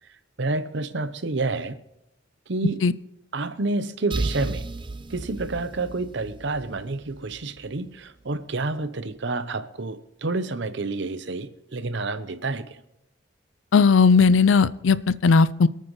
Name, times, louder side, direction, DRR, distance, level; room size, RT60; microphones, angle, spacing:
voice 1, 0.4-1.8 2.5-2.9 3.3-4.7 5.1-12.8, right 3 dB, 65° right, 12 dB, 0.9 m, -29 dB
sound 1, 4.1-7.8, right 2 dB, 25° right, 0.4 m, -34 dB
voice 2, 13.7-15.7, left 5 dB, 85° left, 17 dB, 0.5 m, -17 dB
26.0 x 9.3 x 3.2 m, 0.85 s
head